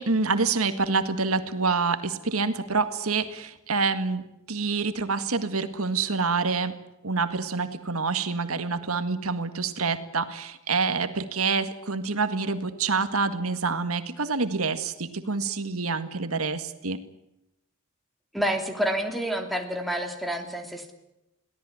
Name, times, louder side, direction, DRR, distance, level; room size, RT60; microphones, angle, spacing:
voice 1, 0.0-6.8 7.0-17.0, right 4 dB, 80° right, 10 dB, 1.8 m, -27 dB
voice 2, 18.3-20.9, equal, ahead, 4 dB, 3.2 m, -28 dB
23.0 x 17.5 x 9.7 m, 0.90 s
head